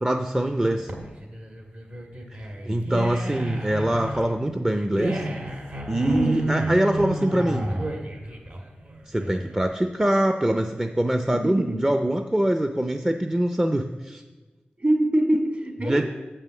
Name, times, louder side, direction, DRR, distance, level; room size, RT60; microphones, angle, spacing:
voice 1, 0.0-0.9 2.7-5.3 5.9-7.7 9.1-14.2 15.8-16.0, right 1 dB, 15° right, 6 dB, 0.5 m, -24 dB
sound 1, 0.6-9.7, right 1 dB, 60° right, 1.7 m, -31 dB
voice 2, 6.0-6.4 11.3-11.9 14.8-16.0, right 1 dB, 45° right, 2 dB, 1.8 m, -24 dB
7.5 x 5.6 x 7.0 m, 1.2 s
wide cardioid pair, 60°, 4 cm